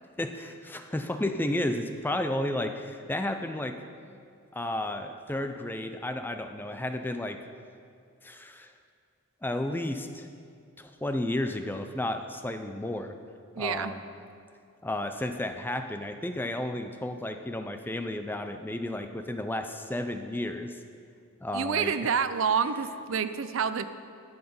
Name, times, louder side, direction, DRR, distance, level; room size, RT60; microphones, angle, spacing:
voice 1, 0.2-3.8 4.5-7.4 8.2-8.7 9.4-10.3 10.8-13.2 13.6-14.0 14.8-20.8 21.4-22.1, left 1 dB, 10° left, 7 dB, 0.4 m, -32 dB
voice 2, 13.6-13.9 21.5-23.8, right 6 dB, 65° right, 12 dB, 0.5 m, -28 dB
11.5 x 7.9 x 5.4 m, 2.3 s
head